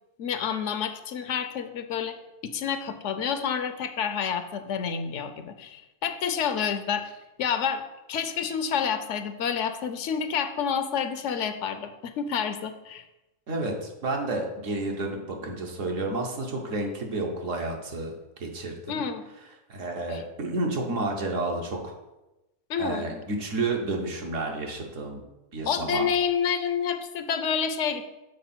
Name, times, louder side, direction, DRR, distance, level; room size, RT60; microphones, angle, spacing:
voice 1, 0.2-2.1 2.4-7.8 8.1-13.0 18.9-19.2 20.1-20.2 22.7-23.0 25.7-28.0, left 7 dB, 70° left, 9 dB, 0.9 m, -29 dB
voice 2, 13.5-18.1 18.4-19.0 19.7-21.9 22.8-25.2 25.5-26.1, right 2 dB, 70° right, 1 dB, 1.5 m, -30 dB
6.5 x 4.2 x 5.9 m, 0.99 s
omnidirectional pair, 1.4 m